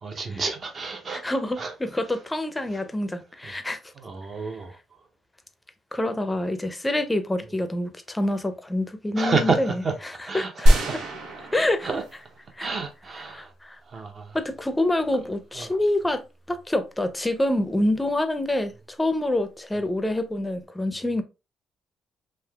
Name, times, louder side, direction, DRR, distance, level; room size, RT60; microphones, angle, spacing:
voice 1, 0.0-1.7 2.7-2.8 3.4-3.5 4.0-4.8 9.2-9.9 10.3-11.0 11.8-12.0 12.6-13.5 13.9-14.4 15.5-15.8, right 4 dB, 45° right, 0.7 m, -30 dB
voice 2, 1.1-3.8 5.9-9.7 10.0-10.7 11.5-11.9 12.6-12.7 13.3-13.8 14.3-16.2 16.5-21.2, left 1 dB, 15° left, 0.5 m, -26 dB
sound 1, 10.7-12.6 12.9-13.0, equal, 90° right, 0.7 m, -22 dB
3.4 x 2.7 x 2.2 m
cardioid pair, 90°, 0 cm